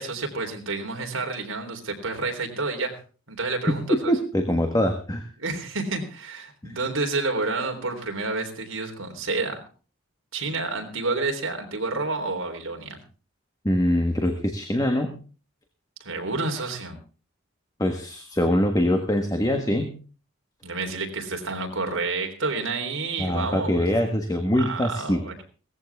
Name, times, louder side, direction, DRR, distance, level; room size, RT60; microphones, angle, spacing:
voice 1, 0.0-3.0 3.3-4.1 5.4-9.6 10.3-13.0 16.0-17.0 20.6-23.9 24.5-25.4, right 3 dB, 70° right, 3 dB, 3.7 m, -29 dB
voice 2, 3.7-5.3 6.6-6.8 13.6-15.2 17.8-20.0 23.2-25.3, equal, 15° left, 5 dB, 1.5 m, -23 dB
17.5 x 15.0 x 3.5 m, 0.36 s
head